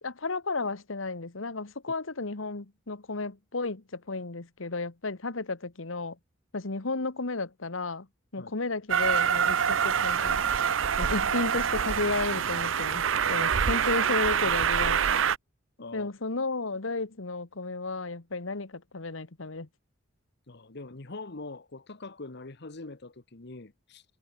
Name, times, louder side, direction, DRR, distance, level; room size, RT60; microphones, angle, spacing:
voice 1, 0.0-6.2 6.5-8.1 8.3-10.5 11.0-15.2 15.9-19.7, left 3 dB, 85° left, 1.5 m, -33 dB
Train, 8.9-15.4, right 7 dB, 80° right, 0.7 m, -26 dB
voice 2, 15.8-16.1 20.5-24.0, left 3 dB, 60° left, 1.3 m, -43 dB
head